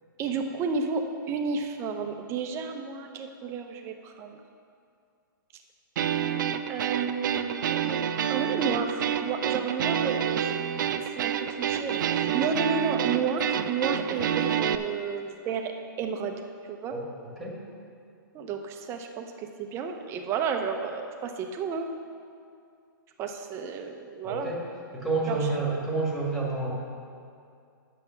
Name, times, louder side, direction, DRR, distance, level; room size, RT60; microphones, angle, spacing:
voice 1, 0.2-4.4 6.7-8.0 8.3-10.5 10.9-11.3 11.6-16.9 18.3-21.9 23.2-24.5 25.3-25.4, right 5 dB, 25° right, 5 dB, 0.7 m, -32 dB
sound 1, 6.0-14.8, right 9 dB, 60° right, 0.5 m, -28 dB
voice 2, 16.9-17.6 24.2-24.6 24.9-26.7, right 3 dB, ahead, -5 dB, 1.9 m, -29 dB
9.0 x 7.1 x 5.7 m, 2.4 s
hypercardioid pair, 145°, 12 cm